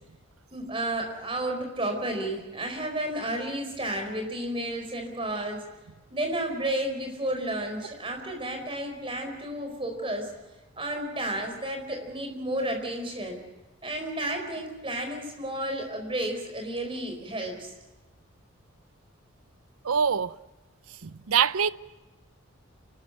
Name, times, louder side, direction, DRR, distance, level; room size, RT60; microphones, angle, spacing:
voice 1, 0.5-5.6 6.1-10.3 10.8-13.4 13.8-17.7, right 1 dB, 25° right, 4.5 m, -32 dB
voice 2, 19.8-20.4 21.0-21.7, right 7 dB, 90° right, 0.6 m, -24 dB
28.0 x 13.0 x 9.2 m
head